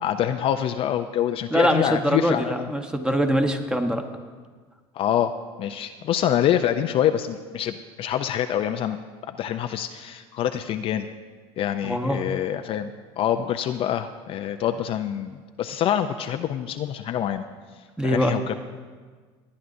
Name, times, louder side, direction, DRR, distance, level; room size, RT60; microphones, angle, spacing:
voice 1, 0.0-2.7 5.0-5.3 5.6-11.1 11.6-17.4 18.0-18.5, left 10 dB, 45° left, 7 dB, 0.4 m, -26 dB
voice 2, 1.5-4.0 11.8-12.2 18.0-18.4, equal, 5° right, 5 dB, 1.0 m, -23 dB
20.0 x 9.4 x 2.6 m, 1.5 s
supercardioid pair, 110°, 13 cm